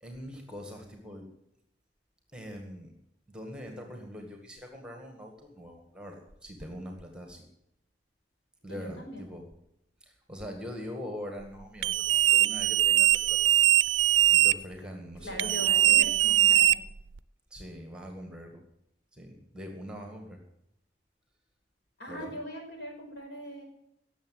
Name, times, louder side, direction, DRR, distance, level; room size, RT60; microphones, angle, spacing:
voice 1, 0.0-1.3 2.3-2.9 3.3-7.4 8.6-9.4 10.3-13.4 14.3-16.0 17.5-18.6 19.1-20.4 22.1-22.3, equal, 5° right, 3 dB, 1.9 m, -43 dB
voice 2, 8.7-9.3 15.2-16.8 22.0-23.6, equal, 60° left, 1 dB, 5.5 m, -40 dB
sound 1, 11.8-14.5 15.4-17.2, right 13 dB, 80° right, 0.4 m, -22 dB
18.0 x 7.4 x 7.7 m, 0.80 s
head